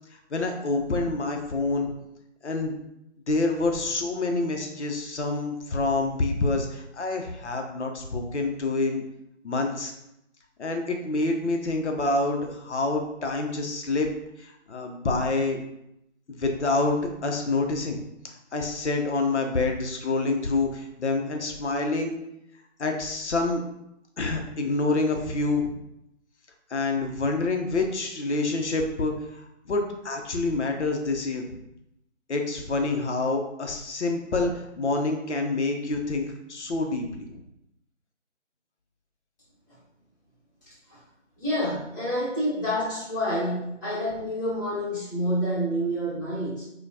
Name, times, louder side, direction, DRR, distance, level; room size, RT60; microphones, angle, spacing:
voice 1, 0.3-1.9 2.4-2.8 3.3-9.0 9.4-9.9 10.6-14.1 14.4-15.6 16.3-18.0 18.5-22.1 22.8-23.6 24.2-25.7 26.7-31.6 32.3-37.4, left 3 dB, 65° left, 3 dB, 0.7 m, -27 dB
voice 2, 40.7-41.0 41.4-46.6, equal, 15° left, -11 dB, 1.0 m, -28 dB
4.1 x 2.2 x 2.7 m, 0.83 s
figure-of-eight pair, 160°, 38 cm